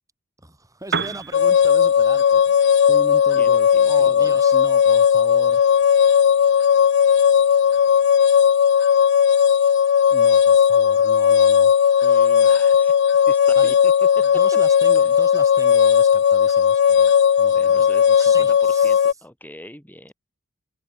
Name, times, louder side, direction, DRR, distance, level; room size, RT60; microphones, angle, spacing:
voice 1, 0.4-5.6 10.1-11.7 13.5-13.7 14.3-17.1 17.4-17.9 18.1-19.1, right 1 dB, 15° right, 6.7 m, -38 dB
Piano, 0.8-8.6, right 6 dB, 55° right, 4.9 m, -37 dB
sound 1, 1.3-19.1, left 8 dB, 55° left, 0.3 m, -16 dB
voice 2, 3.3-4.4 12.0-13.0 13.2-14.2 15.0-15.1 17.5-20.1, left 1 dB, 10° left, 5.8 m, -42 dB
head